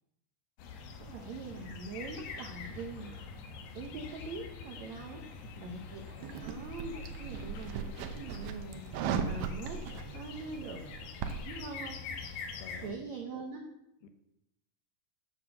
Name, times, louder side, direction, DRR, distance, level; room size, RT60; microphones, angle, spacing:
sound 1, 0.6-12.9, left 5 dB, 70° left, 2.8 m, -45 dB
voice 1, 1.0-3.4 3.7-5.2 5.6-10.8 11.3-12.1 12.8-13.6, right 4 dB, 90° right, 3 dB, 1.5 m, -43 dB
voice 2, 5.1-6.5 12.6-12.9 14.0-14.1, left 5 dB, 90° left, 8 dB, 3.2 m, -52 dB
sound 2, 6.2-11.5, right 6 dB, 75° right, 2.1 m, -37 dB
8.4 x 7.9 x 6.8 m, 0.84 s
omnidirectional pair, 4.7 m